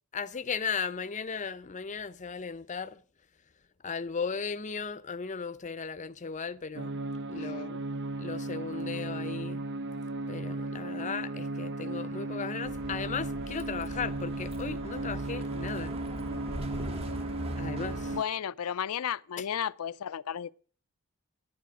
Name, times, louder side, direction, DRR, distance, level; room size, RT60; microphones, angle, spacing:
voice 1, 0.1-3.0 3.8-7.0 7.3-7.8 8.2-9.6 10.3-16.0 17.6-18.2 19.4-19.5, left 5 dB, 35° left, 0.6 m, -36 dB
sound 1, 6.8-18.2, right 2 dB, 55° right, 0.6 m, -36 dB
voice 2, 7.3-7.8 18.1-20.5, left 8 dB, 75° left, 0.4 m, -34 dB
Bus, 12.6-18.2, right 1 dB, 25° right, 1.0 m, -40 dB
10.5 x 9.3 x 6.1 m
head